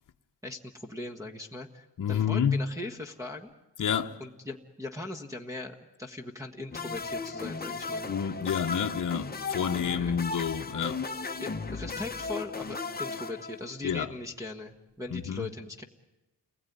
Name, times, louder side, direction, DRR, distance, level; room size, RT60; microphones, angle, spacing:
voice 1, 0.4-3.5 4.2-8.1 10.0-10.1 11.4-15.8, left 2 dB, 5° right, 1.5 m, -40 dB
voice 2, 2.0-2.7 3.8-4.2 8.1-11.0 13.8-14.1 15.1-15.5, left 7 dB, 45° left, 1.1 m, -29 dB
sound 1, 6.7-14.0, left 4 dB, 20° left, 1.1 m, -36 dB
30.0 x 20.5 x 9.5 m
wide cardioid pair, 125°, 43 cm